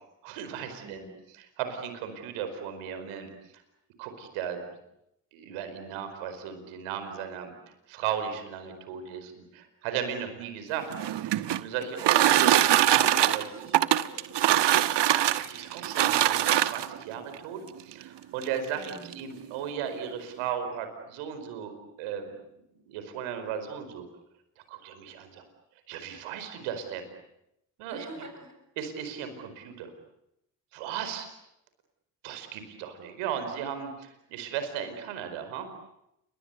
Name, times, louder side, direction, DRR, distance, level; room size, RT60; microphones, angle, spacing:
voice 1, 0.2-1.0 1.3-3.3 4.0-4.6 5.3-11.3 11.6-13.4 15.3-21.7 22.0-22.3 22.7-24.0 24.6-25.4 25.9-27.1 27.8-28.2 28.8-29.9 30.7-31.3 32.2-35.7, right 8 dB, 85° right, 8 dB, 5.0 m, -36 dB
voice 2, 0.8-1.2 13.0-14.2 18.8-19.2 27.9-28.6, right 2 dB, 35° right, 5 dB, 7.2 m, -44 dB
sound 1, 10.8-17.0 17.9-18.0 18.4-18.5 18.8-19.2, right 12 dB, 60° right, 1.3 m, -23 dB
29.0 x 24.0 x 8.3 m, 0.82 s
hypercardioid pair, 55°, 48 cm